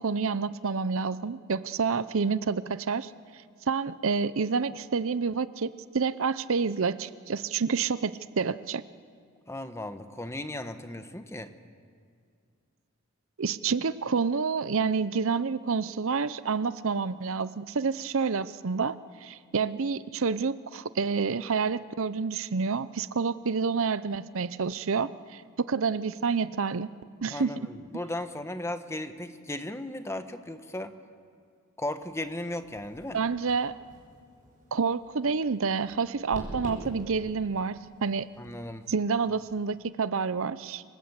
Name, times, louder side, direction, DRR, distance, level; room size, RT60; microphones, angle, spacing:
voice 1, 0.0-3.1 3.7-8.8 13.4-26.9 27.2-27.6 33.1-33.7 34.7-38.3 38.9-40.8, right 5 dB, 65° right, 15 dB, 0.7 m, -28 dB
voice 2, 9.5-11.5 27.3-30.9 31.8-33.2 38.4-38.8, left 1 dB, 10° left, 9 dB, 1.2 m, -36 dB
sound 1, 32.0-39.7, right 1 dB, 40° right, 6.9 m, -47 dB
27.5 x 25.5 x 8.2 m, 2.2 s
head